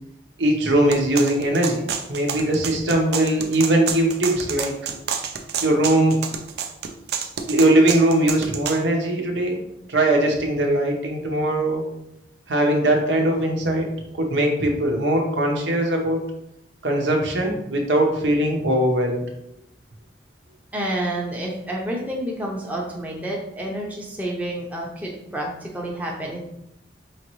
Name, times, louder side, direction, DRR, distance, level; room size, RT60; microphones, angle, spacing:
voice 1, 0.4-1.8 2.1-4.8 5.6-6.2 7.5-9.6 9.9-11.9 12.5-13.9 14.1-16.2 16.8-19.2, right 1 dB, 85° right, 2 dB, 0.9 m, -20 dB
sound 1, 0.9-8.8, right 7 dB, 60° right, 0.4 m, -29 dB
voice 2, 20.7-26.4, right 1 dB, 10° right, -2 dB, 0.6 m, -29 dB
4.9 x 3.0 x 3.0 m, 0.79 s
head